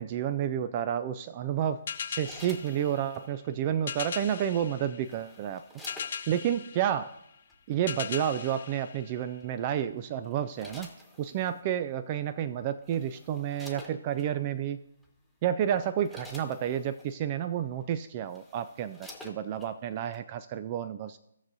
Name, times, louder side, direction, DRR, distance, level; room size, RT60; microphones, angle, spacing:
voice 1, 0.0-1.8 2.1-5.6 6.3-7.1 7.7-10.9 11.2-14.8 15.4-21.2, right 10 dB, 30° right, 11 dB, 0.3 m, -30 dB
sound 1, 1.9-9.7, left 7 dB, 45° left, 0.9 m, -40 dB
sound 2, 1.9-3.3 4.6-6.5 7.5-7.7 9.4-9.7 10.2-11.6 12.4-12.5 12.8-14.3 15.0-15.2 15.6-17.1 17.8-17.9 18.2-19.7 20.1-20.2, left 2 dB, ahead, 1.4 m, -50 dB
17.0 x 6.6 x 2.6 m, 0.82 s
figure-of-eight pair, 140°, 0 cm